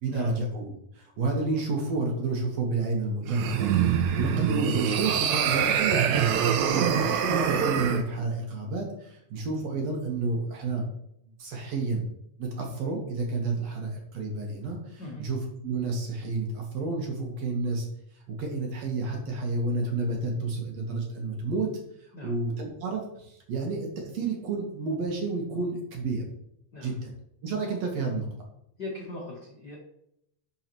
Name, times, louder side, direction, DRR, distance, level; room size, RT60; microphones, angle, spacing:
voice 1, 0.0-6.2 6.6-10.9 11.4-12.0 12.4-15.4 15.6-17.9 18.3-21.7 22.2-26.2 26.8-27.1 27.4-28.3, right 3 dB, 60° right, 1 dB, 2.2 m, -30 dB
sound 1, 3.3-8.0, right 8 dB, 80° right, 1.9 m, -25 dB
voice 2, 15.0-15.3 22.1-22.4 26.7-27.0 28.8-29.8, left 2 dB, 55° left, -3 dB, 1.1 m, -40 dB
11.0 x 5.6 x 3.0 m, 0.78 s
omnidirectional pair, 3.7 m